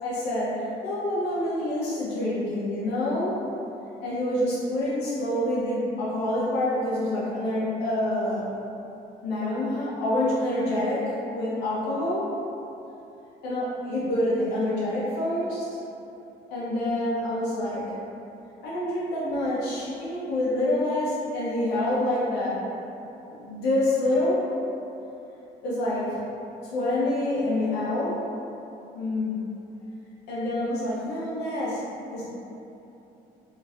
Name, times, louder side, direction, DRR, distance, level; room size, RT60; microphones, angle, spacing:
voice 1, 0.0-3.4 4.0-8.5 9.2-12.3 13.4-15.7 16.5-17.9 18.6-22.7 23.3-24.4 25.6-26.2 26.6-28.2 28.9-29.4 30.3-31.8 32.1-32.3, left 1 dB, 80° left, -7 dB, 0.7 m, -27 dB
3.7 x 2.6 x 2.4 m, 2.9 s
cardioid pair, 110°, 17 cm